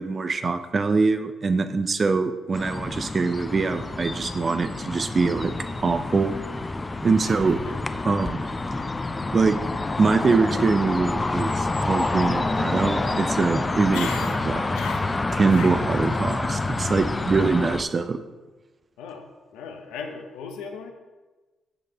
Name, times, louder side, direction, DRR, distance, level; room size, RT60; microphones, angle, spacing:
voice 1, 0.0-5.5 5.8-6.3 7.0-7.6 8.1-8.5 9.3-9.6 10.0-14.1 14.5-14.6 15.4-18.2, right 4 dB, 40° right, 8 dB, 0.5 m, -23 dB
sound 1, 2.5-17.8, left 2 dB, 25° left, 0.5 m, -28 dB
voice 2, 7.2-7.8 13.9-15.2 15.5-15.8 19.0-20.9, left 6 dB, 85° left, 4 dB, 0.7 m, -37 dB
9.9 x 5.2 x 2.9 m, 1.2 s
supercardioid pair, 55°, 0 cm